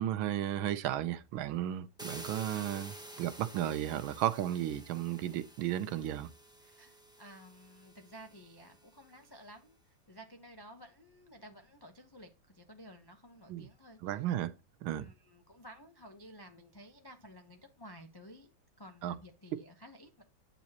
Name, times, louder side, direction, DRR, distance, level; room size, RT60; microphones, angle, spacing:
voice 1, 0.0-6.3 13.5-13.7 14.0-14.5 14.8-15.0 19.0-19.1, right 12 dB, 85° right, 1.5 m, -34 dB
sound 1, 2.0-8.8, right 1 dB, 5° right, 0.8 m, -50 dB
voice 2, 6.6-14.2 14.9-18.5 18.8-20.2, equal, 30° left, 0.4 m, -54 dB
9.4 x 7.1 x 2.9 m
omnidirectional pair, 2.2 m